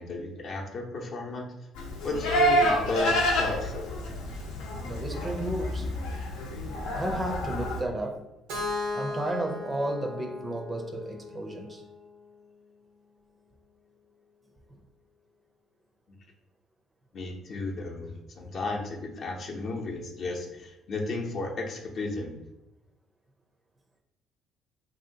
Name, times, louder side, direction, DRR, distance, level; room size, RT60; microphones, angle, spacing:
voice 1, 0.0-1.5 2.0-3.9 17.1-22.3, left 2 dB, 55° left, 0.7 m, -33 dB
Livestock farm animals working animals, 1.8-7.8, equal, 90° left, 0.7 m, -28 dB
voice 2, 4.8-5.9 6.9-8.3 8.9-11.8, right 1 dB, 25° right, 0.5 m, -33 dB
Keyboard (musical), 8.5-12.4, left 3 dB, 85° right, 0.7 m, -37 dB
2.9 x 2.7 x 2.7 m
supercardioid pair, 85°, 0 cm